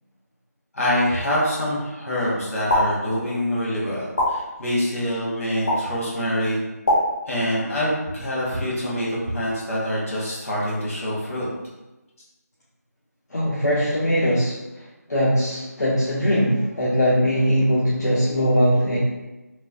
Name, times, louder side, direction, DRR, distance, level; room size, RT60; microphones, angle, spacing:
voice 1, 0.7-6.6 7.3-11.5, equal, 55° left, -7 dB, 1.3 m, -25 dB
sound 1, 2.7-2.8 4.2-4.3 5.7-5.8 6.8-7.0, left 1 dB, 35° left, 0.7 m, -19 dB
voice 2, 13.3-14.6 15.1-19.0, equal, 75° left, -8 dB, 0.7 m, -20 dB
3.0 x 2.0 x 2.5 m, 1.1 s
figure-of-eight pair, 165°, 9 cm